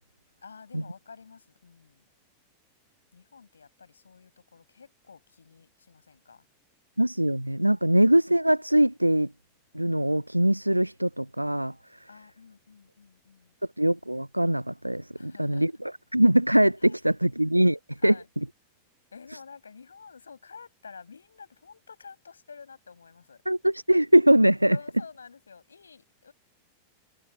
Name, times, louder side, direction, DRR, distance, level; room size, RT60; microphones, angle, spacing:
voice 1, 0.4-2.1 3.1-6.4 12.1-13.6 15.1-15.7 16.8-17.0 18.0-18.3 19.1-23.4 24.7-26.3, left 5 dB, 75° left, 5.8 m, -49 dB
voice 2, 7.0-9.3 9.7-11.7 13.8-18.1 23.5-24.8, right 1 dB, 90° right, 0.6 m, -22 dB
figure-of-eight pair, 90°, 0 cm